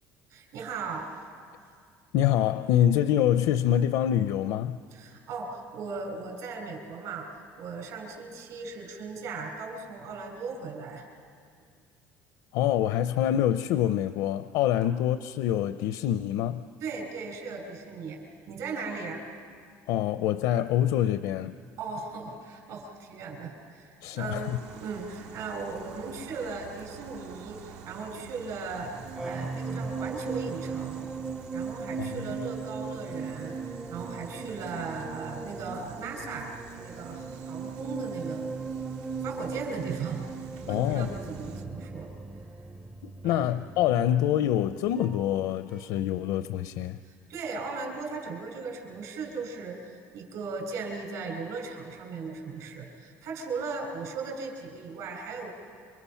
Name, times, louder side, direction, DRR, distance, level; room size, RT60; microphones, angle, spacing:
voice 1, 0.3-1.1 4.9-11.1 14.8-14.9 16.8-18.2 18.5-19.2 21.8-31.1 31.5-38.5 39.2-40.2 40.7-42.1 43.2-43.5 47.0-49.8 50.1-55.5, right 4 dB, 65° right, 2 dB, 5.8 m, -37 dB
voice 2, 2.1-4.8 12.5-16.6 19.9-21.5 24.0-24.6 32.0-32.3 40.7-41.1 43.0-47.0, left 11 dB, 75° left, 11 dB, 0.6 m, -26 dB
sound 1, 24.4-41.7, right 7 dB, 85° right, 1.8 m, -48 dB
sound 2, 28.8-45.5 45.7-46.0, right 4 dB, 10° right, 0.5 m, -38 dB
28.5 x 25.0 x 5.7 m, 2.2 s
cardioid pair, 150°, 7 cm